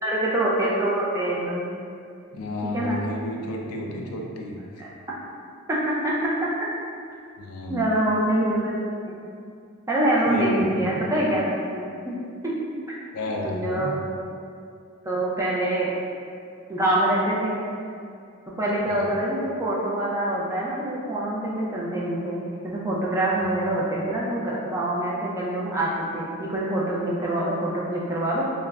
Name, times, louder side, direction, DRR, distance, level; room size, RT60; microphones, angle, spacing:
voice 1, 0.0-1.6 2.6-3.0 4.8-4.9 5.7-6.3 7.7-8.8 9.1-9.2 9.9-11.5 11.7-12.1 12.9-13.0 13.4-14.0 15.0-15.9 16.7-17.6 18.6-28.4, right 1 dB, 15° right, -6 dB, 0.3 m, -25 dB
voice 2, 2.3-4.8 7.4-7.9 10.3-11.1 13.1-13.9 18.9-19.1, left 1 dB, 85° left, 0 dB, 0.4 m, -32 dB
2.3 x 2.0 x 3.3 m, 2.4 s
head